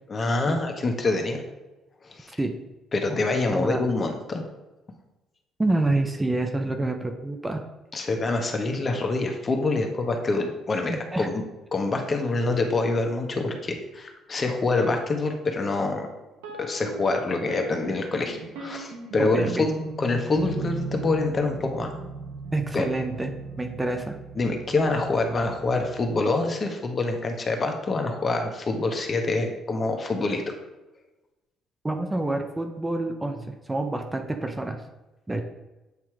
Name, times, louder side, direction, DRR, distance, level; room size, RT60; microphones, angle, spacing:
voice 1, 0.1-1.4 2.1-2.3 2.9-4.4 7.9-11.3 11.7-16.1 16.6-19.7 20.0-21.9 22.7-22.8 24.4-30.5, left 3 dB, 40° left, 4 dB, 1.2 m, -26 dB
voice 2, 3.5-3.8 5.6-7.6 10.9-11.3 19.2-19.7 22.5-23.3 23.6-24.1 31.8-34.8 35.3-35.4, right 2 dB, 15° right, 5 dB, 0.7 m, -27 dB
sound 1, 16.4-26.2, right 4 dB, 85° right, 1.0 m, -38 dB
8.3 x 2.9 x 4.8 m, 1.1 s
supercardioid pair, 65°, 0 cm